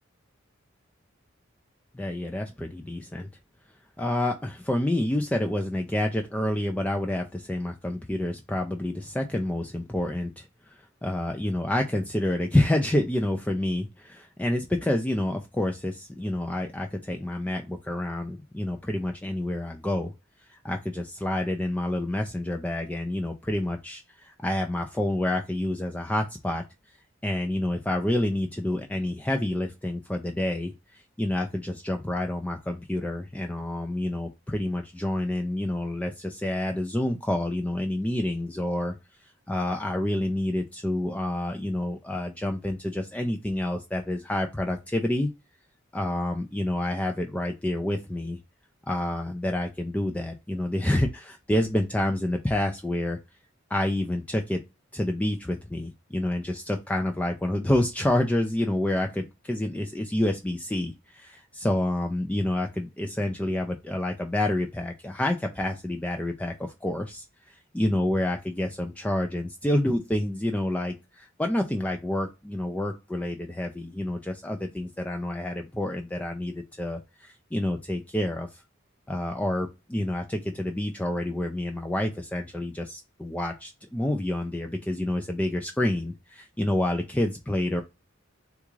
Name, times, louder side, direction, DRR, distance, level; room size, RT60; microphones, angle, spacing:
voice 1, 1.9-3.3 4.0-10.7 11.0-20.1 20.5-26.6 27.2-39.0 39.5-45.3 45.9-48.4 48.9-53.2 53.7-54.6 54.9-78.6 79.1-87.8, left 1 dB, 5° left, 4 dB, 0.3 m, -28 dB
3.5 x 2.4 x 3.0 m, 0.25 s
head